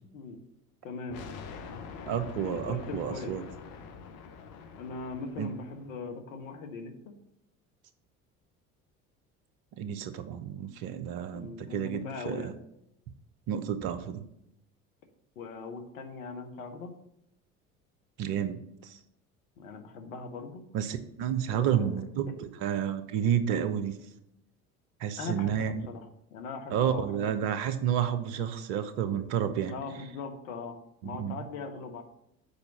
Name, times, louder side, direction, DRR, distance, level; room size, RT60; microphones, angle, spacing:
voice 1, 0.8-1.2 2.4-3.3 4.7-6.9 11.3-12.5 15.3-16.9 19.6-20.6 21.5-22.0 22.3-22.4 25.2-27.5 29.7-30.8 31.0-32.0, left 4 dB, 70° left, 4 dB, 1.4 m, -40 dB
sound 1, 1.1-6.0, left 5 dB, 50° left, 1.2 m, -45 dB
voice 2, 2.1-3.5 5.4-5.5 9.8-12.5 13.5-14.3 18.2-19.0 20.7-24.1 25.0-25.9 26.7-29.7 31.0-31.4, right 9 dB, 55° right, 11 dB, 1.0 m, -30 dB
6.9 x 4.9 x 7.0 m, 0.79 s
figure-of-eight pair, 65°, 43 cm